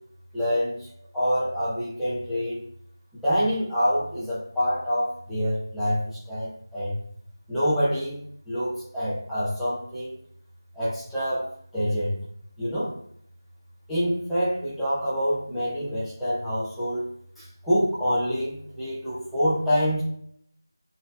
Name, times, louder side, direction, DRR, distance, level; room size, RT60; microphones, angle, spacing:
voice 1, 0.3-0.9 1.1-2.7 3.2-7.0 7.5-8.2 8.5-10.1 10.8-11.5 11.7-12.1 12.6-12.9 13.9-17.0 17.4-20.0, equal, ahead, -15 dB, 0.4 m, -26 dB
11.0 x 3.9 x 2.3 m, 0.68 s
figure-of-eight pair, 180°, 2 cm